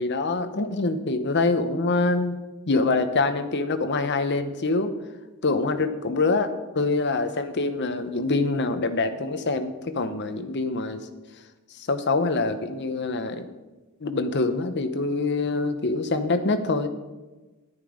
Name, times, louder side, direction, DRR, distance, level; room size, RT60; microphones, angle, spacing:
voice 1, 0.0-2.4 2.7-4.9 5.4-11.1 11.8-13.5 14.0-16.9, left 3 dB, 55° left, 9 dB, 0.9 m, -25 dB
10.5 x 9.7 x 5.0 m, 1.2 s
head